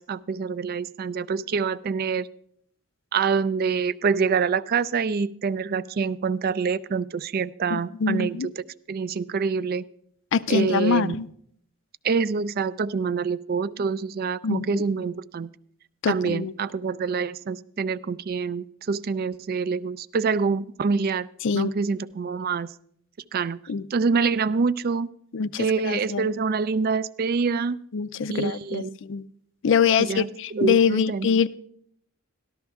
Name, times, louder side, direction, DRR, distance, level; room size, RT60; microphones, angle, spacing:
voice 1, 0.0-2.3 3.1-8.5 8.9-9.8 10.5-11.2 12.0-15.5 16.1-21.3 21.5-22.7 23.3-23.6 23.9-25.1 25.6-27.8 28.3-29.0 30.0-31.3, right 5 dB, 45° right, 0.4 m, -26 dB
voice 2, 7.7-8.5 10.3-11.3 14.4-14.8 16.0-16.5 21.4-21.7 23.7-23.8 25.3-26.3 27.9-29.2 29.6-31.5, left 6 dB, 60° left, 0.4 m, -24 dB
13.5 x 12.5 x 3.5 m
head